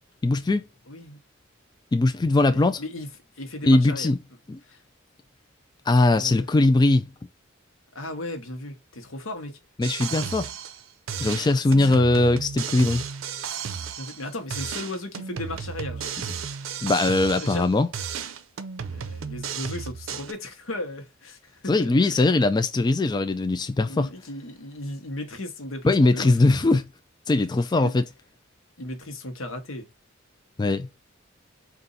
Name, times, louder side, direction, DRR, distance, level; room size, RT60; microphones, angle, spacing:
voice 1, 0.2-0.7 1.9-2.8 3.6-4.2 4.5-4.6 5.9-7.1 9.8-10.5 11.2-13.0 16.8-17.9 21.7-24.1 25.8-26.9 27.3-28.0 30.6-30.9, left 2 dB, 20° left, 0.3 m, -20 dB
voice 2, 0.9-1.2 2.5-3.1 3.4-4.1 4.6-4.8 6.0-6.5 7.9-9.6 11.5-12.0 13.8-16.1 17.4-17.7 18.9-22.2 23.8-26.3 27.7-27.9 28.8-29.9, left 1 dB, 85° left, 1.0 m, -36 dB
sound 1, 9.8-10.8 11.1-14.2 14.5-17.7 17.9-20.3, right 7 dB, 75° right, 0.5 m, -34 dB
4.0 x 2.5 x 3.8 m
head